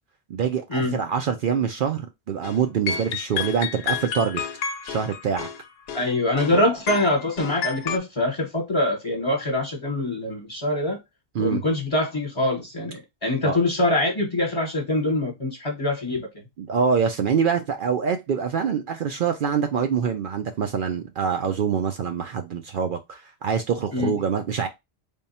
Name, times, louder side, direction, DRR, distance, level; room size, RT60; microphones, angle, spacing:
voice 1, 0.3-4.4 4.8-5.5 6.5-6.6 11.3-11.6 13.4-13.6 16.6-24.7, right 6 dB, 60° right, 0.6 m, -25 dB
sound 1, 2.4-2.6 2.9-6.6 6.9-8.0, left 7 dB, 75° left, 0.8 m, -30 dB
voice 2, 5.9-11.0 11.4-16.3 23.9-24.1, left 1 dB, 30° left, 1.1 m, -24 dB
3.5 x 2.3 x 4.0 m
omnidirectional pair, 1.1 m